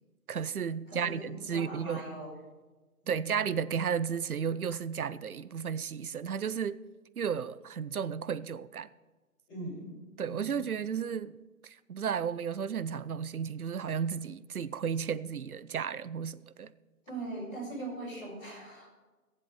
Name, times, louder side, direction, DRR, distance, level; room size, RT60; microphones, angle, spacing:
voice 1, 0.3-2.0 3.1-6.8 7.2-8.9 10.2-16.7, right 7 dB, 70° right, 0.7 m, -33 dB
voice 2, 0.9-2.3 3.0-3.3 9.5-10.0 10.3-10.4 17.0-18.9, right 2 dB, 5° left, 1.2 m, -40 dB
18.0 x 7.7 x 4.9 m
figure-of-eight pair, 170°, 45 cm